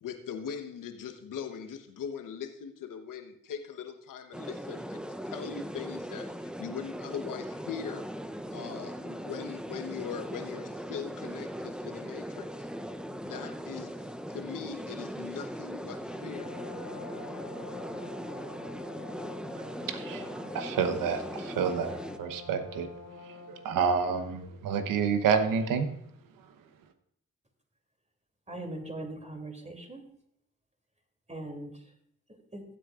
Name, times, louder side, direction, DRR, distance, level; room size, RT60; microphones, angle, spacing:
voice 1, 0.0-8.1 8.5-12.7 13.1-16.7, left 7 dB, 70° left, 6 dB, 1.1 m, -41 dB
sound 1, 4.3-22.2, equal, 5° right, 0.7 m, -39 dB
Brass instrument, 16.0-23.7, left 5 dB, 85° left, 1.6 m, -47 dB
voice 2, 19.9-22.9 23.2-25.9, right 6 dB, 80° right, 9 dB, 1.0 m, -29 dB
voice 3, 28.5-30.0 31.3-31.7 32.5-32.6, right 1 dB, 20° right, 4 dB, 2.9 m, -40 dB
15.5 x 8.6 x 2.5 m, 0.71 s
supercardioid pair, 40°, 33 cm